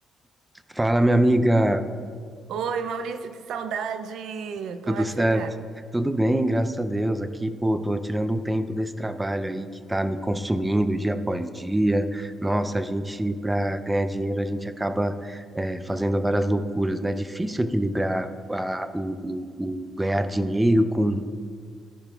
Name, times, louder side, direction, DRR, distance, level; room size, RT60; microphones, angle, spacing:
voice 1, 0.7-1.8 4.9-5.4 5.9-21.3, right 1 dB, 10° right, 0.5 m, -25 dB
voice 2, 2.5-5.5, right 6 dB, 75° right, 0.5 m, -32 dB
14.0 x 5.7 x 2.4 m
cardioid pair, 90°, 0 cm